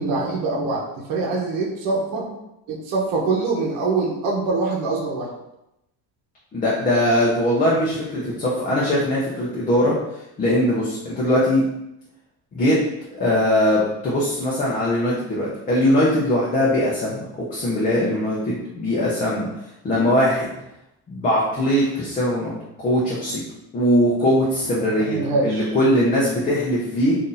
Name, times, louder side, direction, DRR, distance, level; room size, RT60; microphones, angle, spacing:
voice 1, 0.0-2.3 2.7-5.3 25.1-25.6, right 3 dB, 70° right, -2 dB, 0.9 m, -24 dB
voice 2, 6.5-10.0 10.4-11.6 12.5-12.8 13.1-17.3 17.5-19.5 19.8-20.5 21.1-23.4 23.7-27.2, left 1 dB, 25° left, -6 dB, 0.5 m, -21 dB
2.7 x 2.6 x 3.8 m, 0.86 s
cardioid pair, 150°, 36 cm